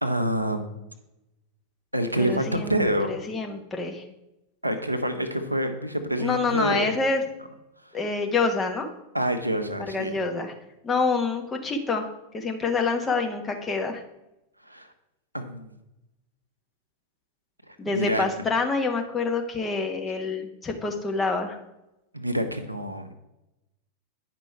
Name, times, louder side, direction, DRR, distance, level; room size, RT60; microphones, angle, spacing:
voice 1, 0.0-0.9 1.9-3.2 4.6-6.9 9.1-10.1 14.7-14.9 15.3-15.7 17.8-18.3 22.1-23.1, right 1 dB, 85° right, 7 dB, 0.8 m, -27 dB
voice 2, 2.2-4.0 6.2-7.2 7.9-8.9 9.9-10.5 10.8-14.0 17.8-21.6, left 4 dB, 20° left, 4 dB, 1.2 m, -27 dB
9.7 x 5.2 x 4.6 m, 0.92 s
figure-of-eight pair, 90°, 0 cm